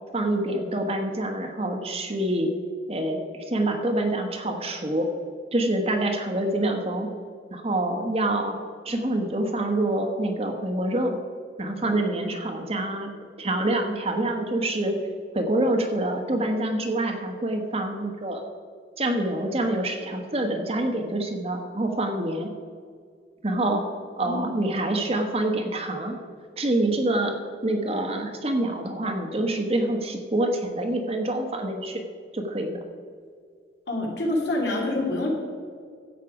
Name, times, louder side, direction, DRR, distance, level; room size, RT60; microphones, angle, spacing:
voice 1, 0.1-2.5 2.9-5.1 5.5-7.1 7.5-8.6 8.8-11.2 11.6-13.1 13.4-15.0 15.3-18.4 19.0-22.5 23.4-23.8 24.2-26.2 26.6-32.0 32.3-32.8, right 1 dB, 35° right, 4 dB, 1.2 m, -26 dB
voice 2, 33.9-35.3, left 2 dB, 70° left, 0 dB, 2.7 m, -27 dB
14.0 x 8.4 x 4.9 m, 2.1 s
head